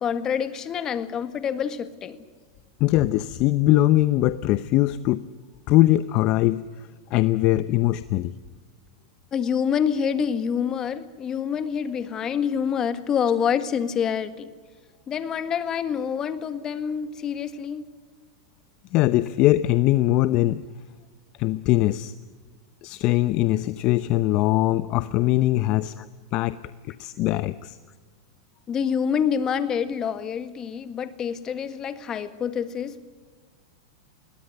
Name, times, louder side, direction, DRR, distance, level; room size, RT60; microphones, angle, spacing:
voice 1, 0.0-2.2 9.3-14.5 15.1-17.9 26.0-26.1 28.7-33.0, left 7 dB, 25° left, 11 dB, 1.8 m, -27 dB
voice 2, 2.8-5.2 5.7-8.4 18.9-20.6 21.4-22.1 22.8-25.9 26.3-26.6 26.8-27.8, left 16 dB, 45° left, 14 dB, 0.7 m, -21 dB
22.0 x 19.0 x 8.0 m, 1.4 s
supercardioid pair, 135°, 2 cm